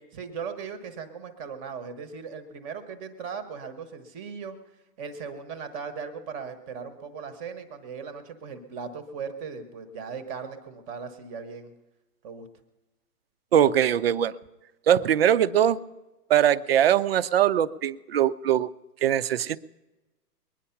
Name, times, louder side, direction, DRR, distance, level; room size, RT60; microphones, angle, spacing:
voice 1, 0.1-4.6 5.0-11.7 12.2-12.5, right 6 dB, 15° right, 9 dB, 0.9 m, -38 dB
voice 2, 13.5-14.3 14.9-15.8 16.3-18.7 19.0-19.6, right 10 dB, 40° right, 14 dB, 0.5 m, -21 dB
21.5 x 9.9 x 5.7 m, 1.1 s
hypercardioid pair, 150°, 48 cm